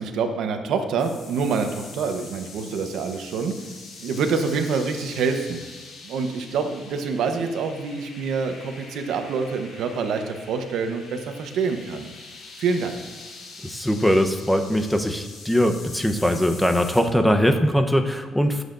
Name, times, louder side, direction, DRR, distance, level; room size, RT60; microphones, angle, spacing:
voice 1, 0.0-3.5 4.0-5.6 6.0-12.1 12.6-13.0, right 5 dB, 80° right, 6 dB, 1.1 m, -26 dB
sound 1, 1.0-17.0, left 3 dB, 70° left, 3.9 m, -43 dB
voice 2, 13.6-18.6, equal, 5° left, 5 dB, 0.9 m, -21 dB
20.5 x 8.0 x 2.6 m, 1.4 s
cardioid pair, 90°, 0 cm